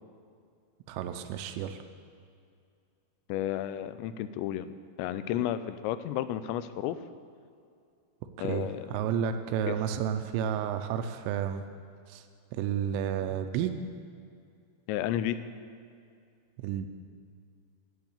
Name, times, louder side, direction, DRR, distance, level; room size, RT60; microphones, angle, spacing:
voice 1, 0.9-1.8 8.4-11.6 12.1-12.2 12.5-13.8 16.6-16.9, right 8 dB, 85° right, 7 dB, 2.8 m, -31 dB
voice 2, 3.3-4.7 5.0-7.0 8.4-8.9 9.7-9.8 14.9-15.4, left 11 dB, 85° left, 13 dB, 2.7 m, -32 dB
11.5 x 7.4 x 8.7 m, 2.4 s
omnidirectional pair, 5.2 m